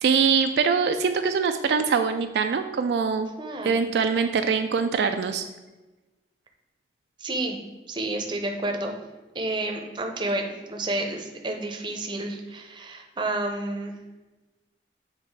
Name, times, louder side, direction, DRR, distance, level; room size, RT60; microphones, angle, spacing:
voice 1, 0.0-3.3 3.6-5.4, right 5 dB, 70° right, 7 dB, 0.3 m, -23 dB
voice 2, 3.4-3.8 7.2-7.6 7.9-9.0 9.3-14.0, right 2 dB, 25° right, 3 dB, 0.6 m, -30 dB
7.4 x 3.0 x 4.6 m, 1.1 s
head